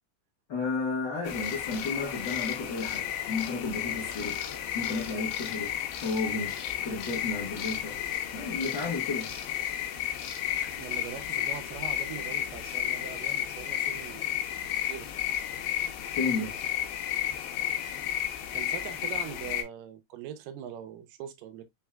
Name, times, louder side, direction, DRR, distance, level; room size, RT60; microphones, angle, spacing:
voice 1, 0.5-4.4 4.7-8.0 8.3-9.3 16.1-16.5, left 3 dB, 65° left, 1.1 m, -33 dB
sound 1, 1.2-19.6, left 11 dB, 80° left, 2.6 m, -33 dB
voice 2, 10.8-14.3 14.7-15.1 18.5-21.6, right 10 dB, 75° right, 2.3 m, -42 dB
5.9 x 3.6 x 2.2 m
omnidirectional pair, 4.3 m